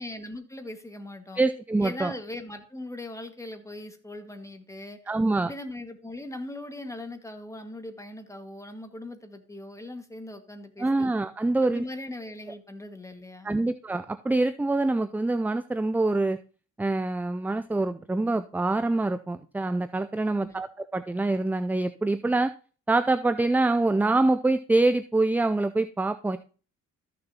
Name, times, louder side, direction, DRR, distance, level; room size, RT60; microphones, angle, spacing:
voice 1, 0.0-1.4 1.8-5.0 5.3-11.1 11.6-13.6 20.3-20.6, left 1 dB, 10° left, 6 dB, 1.7 m, -40 dB
voice 2, 1.4-2.1 5.1-5.5 10.8-11.8 13.4-16.4 16.8-22.5 22.9-26.4, right 2 dB, 5° right, 12 dB, 0.3 m, -25 dB
14.0 x 6.7 x 2.8 m, 0.38 s
cardioid pair, 90°, 30 cm